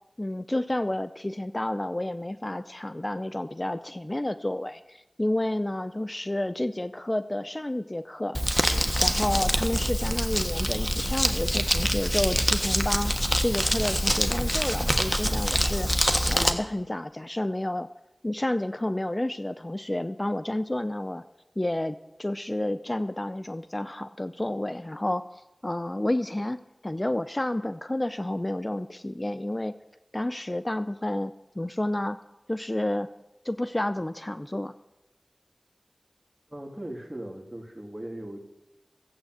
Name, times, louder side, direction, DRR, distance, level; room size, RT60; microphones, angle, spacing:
voice 1, 0.2-8.4 9.0-13.2 13.4-15.9 16.3-17.9 18.2-21.2 21.6-29.7 30.1-32.2 32.5-33.1 33.4-34.7, left 1 dB, 30° left, 12 dB, 0.5 m, -30 dB
Crumpling crinkling, 8.3-16.5, equal, 5° left, 1.5 m, -25 dB
voice 2, 36.5-38.4, right 1 dB, 25° right, 1 dB, 3.4 m, -38 dB
15.0 x 8.1 x 7.9 m, 0.92 s
wide cardioid pair, 40°, 0 cm